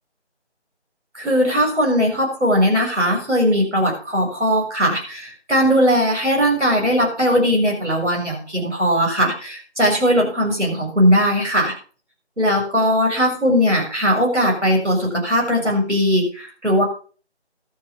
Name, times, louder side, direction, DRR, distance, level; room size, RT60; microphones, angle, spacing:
voice 1, 1.1-11.7 12.4-16.8, equal, 85° right, -1 dB, 7.1 m, -19 dB
12.5 x 8.1 x 6.1 m, 0.40 s
figure-of-eight pair, 165°, 34 cm